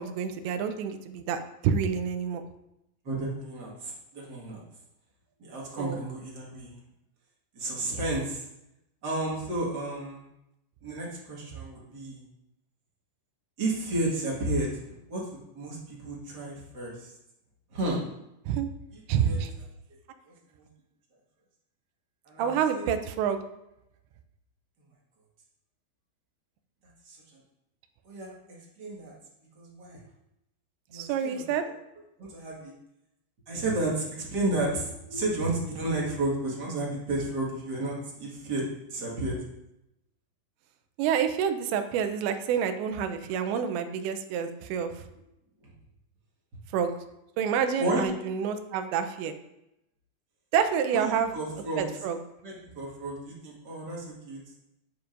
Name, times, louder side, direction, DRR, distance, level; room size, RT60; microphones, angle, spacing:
voice 1, 0.0-2.5 5.8-6.0 7.8-8.0 18.5-18.7 19.1-19.5 22.4-23.4 30.9-31.6 41.0-45.0 46.7-47.0 47.4-49.3 50.5-51.4 51.8-52.2, right 7 dB, 85° right, 8 dB, 2.9 m, -28 dB
voice 2, 3.0-4.6 5.4-6.7 7.5-8.5 9.0-10.2 10.8-12.2 13.6-17.1 17.7-18.0 18.9-19.0 19.2-19.4 20.5-20.7 22.2-22.8 27.0-27.2 28.0-29.1 29.5-30.0 30.9-31.4 32.2-32.7 33.5-38.6 38.9-39.4 45.6-45.7 47.8-48.1 50.9-51.8 52.4-54.4, right 2 dB, 70° right, -4 dB, 0.9 m, -32 dB
11.5 x 7.2 x 2.6 m, 0.86 s
omnidirectional pair, 5.0 m